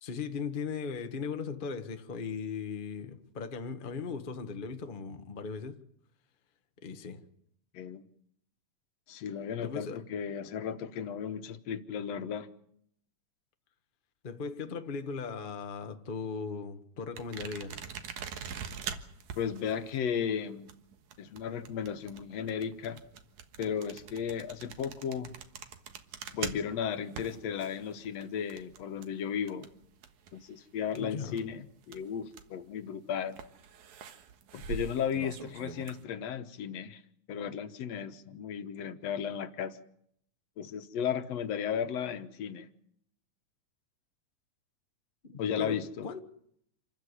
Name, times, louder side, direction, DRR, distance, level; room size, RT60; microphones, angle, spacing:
voice 1, 0.0-5.8 6.8-7.2 9.6-10.0 14.2-17.8 31.0-31.5 45.2-46.2, left 5 dB, 85° left, 0.4 m, -38 dB
voice 2, 9.1-12.5 19.4-20.7 21.2-23.0 23.6-25.3 26.3-29.7 30.3-33.4 34.5-37.0 37.3-39.8 40.6-42.7 45.4-46.1, left 8 dB, 65° left, 2.1 m, -35 dB
sound 1, 17.2-30.5 30.8-32.6 33.3-36.0, right 7 dB, 75° right, 2.8 m, -43 dB
27.5 x 14.5 x 9.8 m
omnidirectional pair, 3.5 m